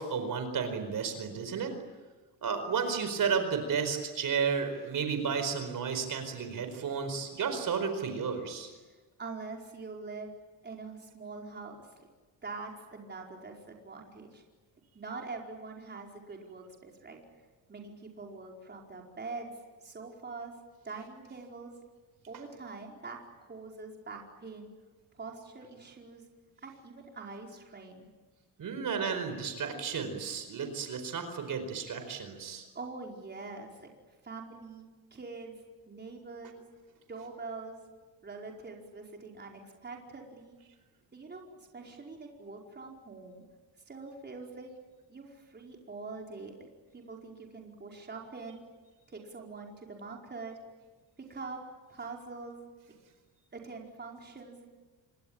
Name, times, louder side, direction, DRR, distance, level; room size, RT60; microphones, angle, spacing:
voice 1, 0.0-1.7 2.4-8.7 28.6-32.6, right 6 dB, 50° right, 7 dB, 4.7 m, -32 dB
voice 2, 9.2-10.3 10.6-11.8 12.4-14.4 14.9-17.2 17.7-19.5 19.8-20.5 20.8-21.8 22.3-24.7 25.2-26.2 26.6-28.1 32.7-33.9 34.2-35.6 35.9-36.6 37.1-37.9 38.2-40.6 41.1-43.4 43.9-44.7 45.1-46.6 46.9-48.6 49.1-50.6 51.2-51.6 51.9-52.7 53.5-54.7, right 4 dB, 25° right, 0 dB, 4.7 m, -44 dB
27.5 x 24.0 x 8.9 m, 1.3 s
cardioid pair, 140°, 41 cm